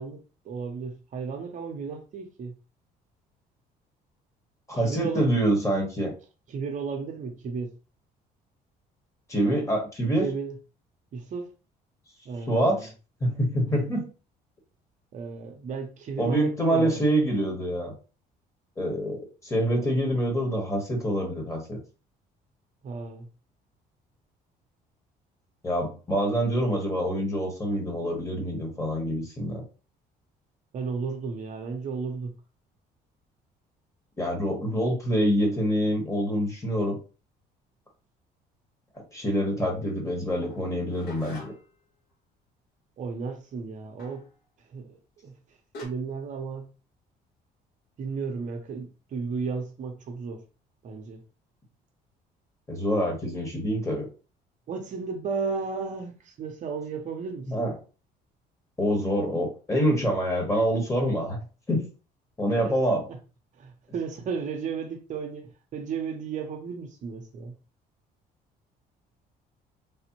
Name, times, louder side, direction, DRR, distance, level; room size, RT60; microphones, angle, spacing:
voice 1, 0.0-2.5 4.7-5.3 6.5-7.7 10.1-10.6 11.1-11.5 12.2-12.9 15.1-17.0 22.8-23.3 30.7-32.3 43.0-44.3 44.7-45.3 45.8-46.7 48.0-50.4 50.8-51.2 54.7-57.7 62.6-62.8 63.6-67.5, right 5 dB, 45° right, 0.6 m, -34 dB
voice 2, 4.7-6.1 9.3-10.3 12.5-12.9 13.2-14.1 16.2-17.9 18.8-21.8 25.6-29.6 34.2-37.0 39.1-41.5 52.7-54.1 57.5-57.7 58.8-61.9 62.4-63.0, equal, 15° left, 1.1 m, -26 dB
sound 1, 40.4-41.8 44.0-44.3 45.3-45.4 45.7-45.9, left 1 dB, 70° left, 1.3 m, -44 dB
3.3 x 2.0 x 2.9 m
cardioid pair, 110°, 17 cm